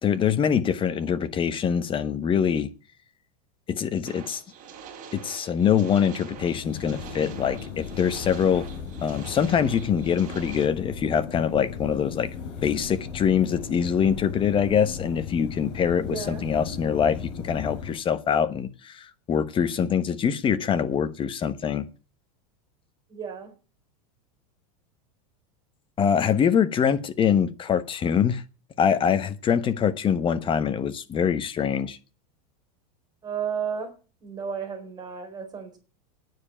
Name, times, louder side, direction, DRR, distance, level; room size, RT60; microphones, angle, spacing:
voice 1, 0.0-2.7 3.7-4.4 5.1-8.7 9.0-12.3 12.6-21.8 26.0-28.4 28.8-32.0, left 7 dB, 25° left, 1.2 m, -24 dB
sound 1, 4.1-10.6, right 7 dB, 40° right, 4.2 m, -44 dB
sound 2, 6.4-18.0, left 6 dB, 65° left, 5.6 m, -37 dB
voice 2, 16.0-16.4 23.1-23.5 33.2-33.9 34.2-35.8, right 7 dB, 20° right, 4.4 m, -33 dB
9.6 x 7.1 x 8.9 m
supercardioid pair, 130°, 20 cm